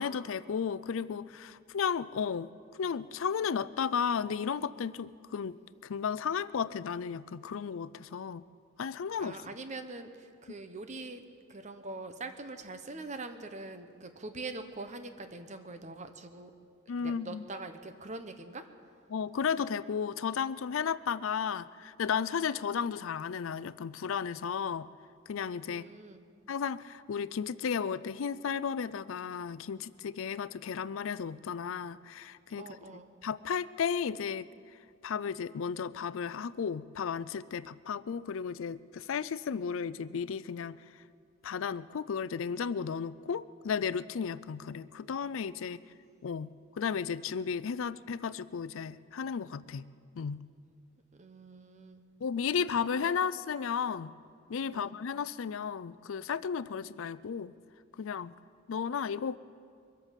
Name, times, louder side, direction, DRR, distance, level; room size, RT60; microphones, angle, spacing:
voice 1, 0.0-2.5 2.8-5.6 5.8-8.4 8.8-9.4 10.5-10.6 16.9-17.4 19.1-24.9 25.3-25.9 26.5-32.8 33.2-34.5 35.0-40.8 41.4-45.8 46.2-49.9 50.2-50.5 52.2-54.1 54.5-57.5 58.0-58.3 58.7-59.4, left 6 dB, 70° left, 17 dB, 0.4 m, -34 dB
voice 2, 9.2-11.2 11.5-16.5 17.0-18.7 25.7-26.2 32.5-33.1 51.1-52.0 52.8-52.9 54.7-55.0, right 3 dB, 35° right, 9 dB, 0.9 m, -43 dB
23.0 x 8.2 x 7.4 m, 2.3 s
head